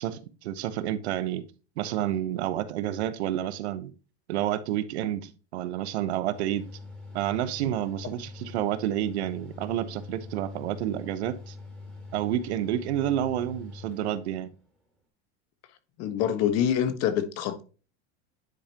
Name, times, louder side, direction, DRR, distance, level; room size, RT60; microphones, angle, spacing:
voice 1, 0.0-1.5 1.8-3.9 4.3-6.7 7.1-11.6 12.1-14.5, right 11 dB, 90° right, 1.0 m, -29 dB
Mechanical fan, 6.3-14.7, left 3 dB, 5° left, 3.3 m, -44 dB
voice 2, 16.0-17.6, left 9 dB, 50° left, 1.4 m, -26 dB
9.9 x 5.1 x 2.9 m
supercardioid pair, 135°, 32 cm